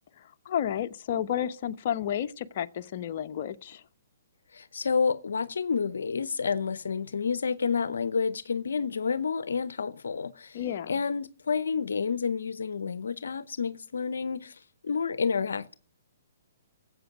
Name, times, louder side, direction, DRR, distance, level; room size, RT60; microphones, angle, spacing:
voice 1, 0.4-3.8 10.5-10.9, left 10 dB, 50° left, 0.8 m, -31 dB
voice 2, 4.5-15.7, left 5 dB, 80° left, 0.7 m, -29 dB
13.0 x 8.1 x 9.2 m
hypercardioid pair, 140°, 0 cm